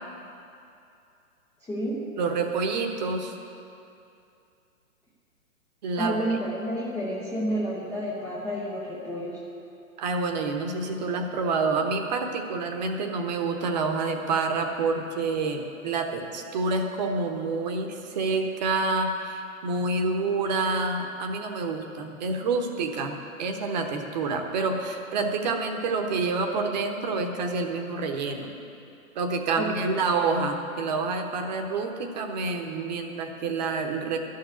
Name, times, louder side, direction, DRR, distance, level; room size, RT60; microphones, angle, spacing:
voice 1, 1.6-2.1 6.0-9.4 29.6-30.0, equal, 5° left, -8 dB, 0.5 m, -30 dB
voice 2, 2.2-3.3 5.8-6.2 10.0-28.5 29.1-34.2, right 3 dB, 30° right, 5 dB, 1.0 m, -28 dB
12.0 x 6.6 x 9.4 m, 2.6 s
figure-of-eight pair, 120°, 41 cm